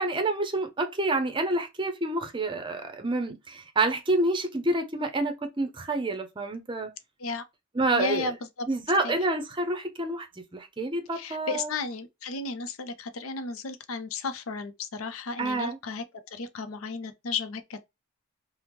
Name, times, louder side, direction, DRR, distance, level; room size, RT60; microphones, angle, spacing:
voice 1, 0.0-6.9 7.7-8.3 8.7-10.3 10.5-11.7 15.4-15.8, right 2 dB, 25° right, 0.6 m, -28 dB
voice 2, 7.9-8.7 9.0-9.2 11.1-16.0 16.3-17.9, left 4 dB, 85° left, 0.5 m, -34 dB
3.4 x 2.0 x 2.9 m
head